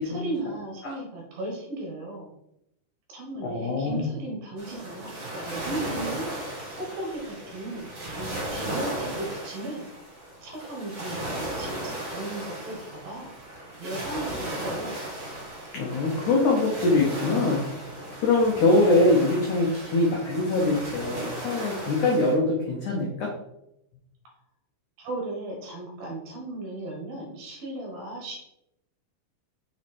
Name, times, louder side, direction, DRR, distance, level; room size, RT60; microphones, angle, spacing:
voice 1, 0.0-2.3 3.1-6.3 6.8-9.8 10.4-13.3 13.8-15.0 25.0-28.4, right 1 dB, 60° right, -1 dB, 2.9 m, -36 dB
voice 2, 3.4-4.1 15.7-17.6 18.2-23.3, left 2 dB, 80° left, -2 dB, 1.7 m, -23 dB
sound 1, 4.6-22.3, right 1 dB, 35° right, 2.6 m, -36 dB
6.5 x 4.8 x 4.3 m, 0.82 s
omnidirectional pair, 5.1 m